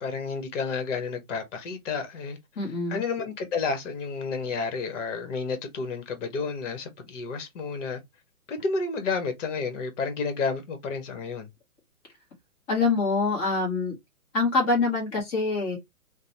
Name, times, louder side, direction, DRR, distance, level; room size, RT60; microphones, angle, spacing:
voice 1, 0.0-2.4 2.9-8.0 8.5-11.5, left 4 dB, 55° left, 1.1 m, -31 dB
voice 2, 2.6-3.0 12.7-14.0 14.3-15.8, left 3 dB, 15° left, 0.7 m, -25 dB
2.8 x 2.0 x 2.7 m
hypercardioid pair, 150°, 44 cm